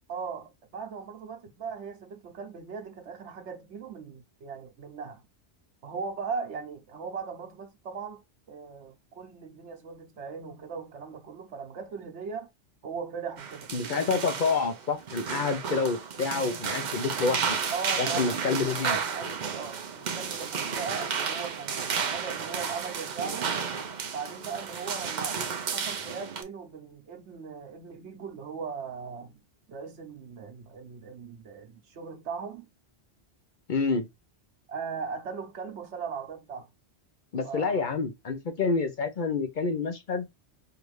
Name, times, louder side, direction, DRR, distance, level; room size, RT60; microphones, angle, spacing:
voice 1, 0.1-5.2 5.8-8.2 8.5-12.5 12.8-13.7 17.7-23.5 24.1-25.4 25.7-29.4 29.7-32.6 34.7-36.7 37.4-38.0, right 5 dB, 80° right, 1.2 m, -38 dB
sound 1, 13.4-26.4, right 6 dB, 50° right, 0.6 m, -32 dB
voice 2, 13.7-17.6 18.0-19.0 33.7-34.1 37.3-40.2, left 4 dB, 50° left, 0.7 m, -28 dB
4.6 x 2.5 x 3.1 m
omnidirectional pair, 1.2 m